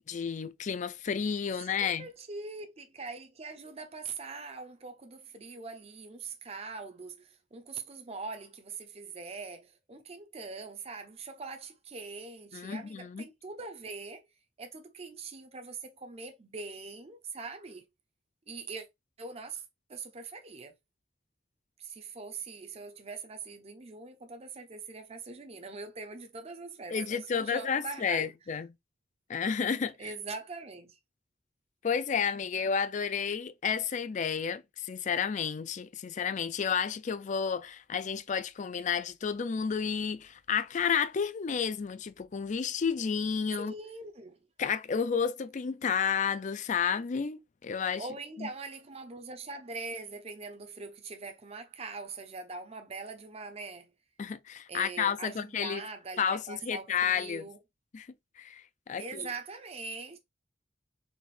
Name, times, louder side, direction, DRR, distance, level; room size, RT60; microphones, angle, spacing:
voice 1, 0.1-2.1 12.5-13.3 26.9-28.7 29.3-29.9 31.8-43.7 44.6-48.1 48.4-48.5 54.2-55.8 56.2-57.4 57.9-58.1 58.4-59.3, left 6 dB, 40° left, 0.4 m, -31 dB
voice 2, 1.5-14.2 14.6-17.8 18.5-18.8 19.2-19.6 19.9-20.7 21.8-28.3 30.0-31.0 43.6-44.4 48.0-53.9 54.7-57.6 59.0-60.2, right 4 dB, 35° right, 0.6 m, -42 dB
4.2 x 2.5 x 3.3 m
head